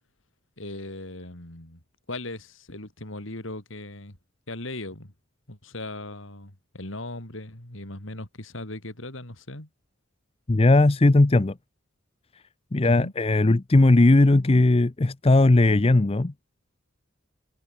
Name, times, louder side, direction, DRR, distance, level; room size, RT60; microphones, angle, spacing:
voice 1, 0.6-1.8 2.1-4.2 4.5-5.1 5.5-9.7 12.8-13.1, left 2 dB, 70° left, 4.1 m, -38 dB
voice 2, 10.5-11.5 12.7-16.3, left 2 dB, 30° left, 0.6 m, -18 dB
head